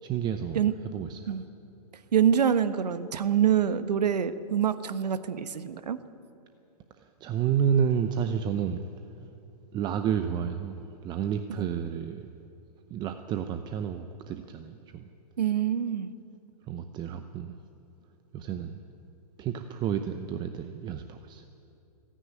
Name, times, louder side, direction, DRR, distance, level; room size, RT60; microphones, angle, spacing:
voice 1, 0.0-1.3 7.0-8.9 9.7-12.3 12.9-15.1 16.7-17.6 18.3-18.8 19.4-21.4, right 8 dB, 20° right, 8 dB, 0.7 m, -30 dB
voice 2, 2.1-6.0 15.4-16.1, right 9 dB, 85° right, 11 dB, 1.3 m, -25 dB
27.5 x 10.0 x 9.5 m, 2.8 s
hypercardioid pair, 140°, 20 cm